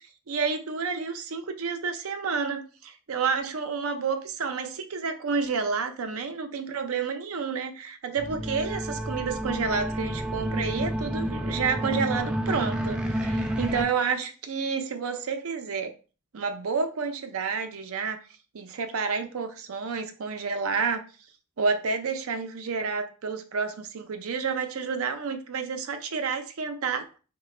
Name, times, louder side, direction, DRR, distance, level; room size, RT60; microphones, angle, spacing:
voice 1, 0.0-15.9 16.3-18.2 18.5-21.1 21.6-27.0, right 5 dB, 75° right, 0.5 m, -30 dB
sound 1, 8.2-13.8, equal, 5° right, 0.3 m, -30 dB
3.8 x 2.2 x 3.1 m
head